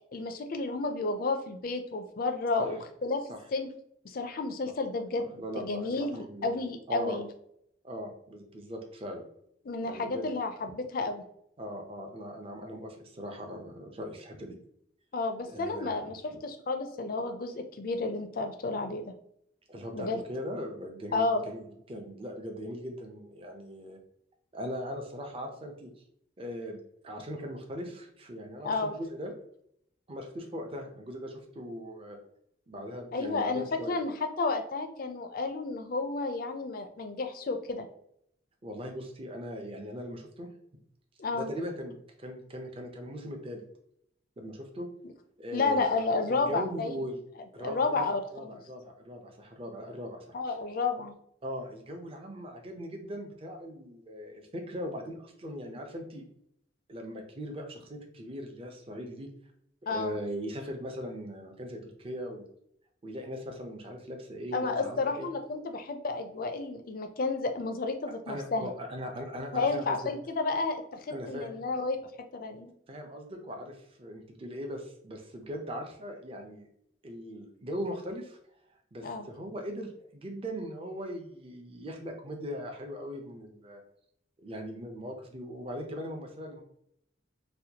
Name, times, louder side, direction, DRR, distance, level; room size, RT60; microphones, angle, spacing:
voice 1, 0.1-3.2 3.5-3.7 4.0-7.3 9.7-11.2 15.1-19.1 19.9-20.2 21.1-21.4 28.6-29.0 33.1-37.9 41.2-41.5 45.5-47.0 47.6-48.6 50.3-51.1 59.9-60.2 64.5-68.7 69.5-72.0 72.3-72.7 79.0-79.3, left 3 dB, 50° left, 7 dB, 0.4 m, -31 dB
voice 2, 5.4-6.6 6.9-7.2 7.8-9.2 9.8-10.3 11.6-14.6 15.5-16.0 16.3-16.4 19.7-24.0 24.5-25.9 26.4-26.8 27.0-29.3 30.1-32.2 32.7-33.9 38.6-40.5 41.3-43.6 44.4-44.9 45.4-45.9 46.3-47.2 47.5-50.4 51.4-56.2 56.9-59.3 59.9-62.4 63.0-65.3 68.3-70.0 71.1-71.6 72.9-76.7 77.0-78.4 78.9-83.8 84.4-86.6, equal, 30° right, 3 dB, 0.5 m, -39 dB
4.2 x 2.2 x 2.8 m, 0.72 s
head